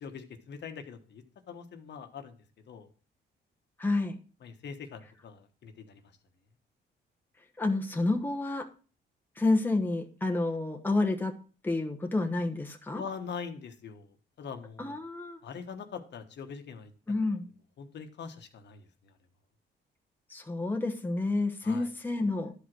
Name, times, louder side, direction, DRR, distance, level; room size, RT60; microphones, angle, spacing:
voice 1, 0.0-2.4 2.7-2.9 4.4-6.0 12.9-14.1 14.4-15.0 15.4-16.9 17.8-18.8 21.6-21.9, left 6 dB, 65° left, 6 dB, 1.3 m, -42 dB
voice 2, 3.8-4.2 7.6-8.7 9.4-11.3 11.6-13.0 14.8-15.4 17.1-17.5 20.3-22.5, left 2 dB, 10° left, 4 dB, 1.1 m, -29 dB
11.5 x 5.0 x 6.1 m, 0.39 s
cardioid pair, 105°, 20 cm